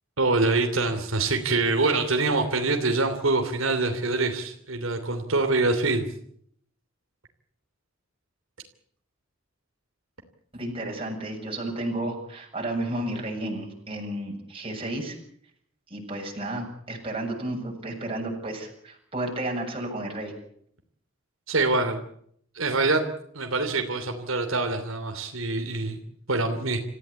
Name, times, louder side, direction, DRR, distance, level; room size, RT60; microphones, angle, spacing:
voice 1, 0.2-6.1 21.5-22.0 22.5-23.0 23.3-26.0 26.3-26.8, right 3 dB, 85° right, 5 dB, 3.0 m, -25 dB
voice 2, 10.5-15.2 15.9-20.3, right 1 dB, 30° right, 0 dB, 7.6 m, -32 dB
27.5 x 15.5 x 8.5 m, 0.67 s
head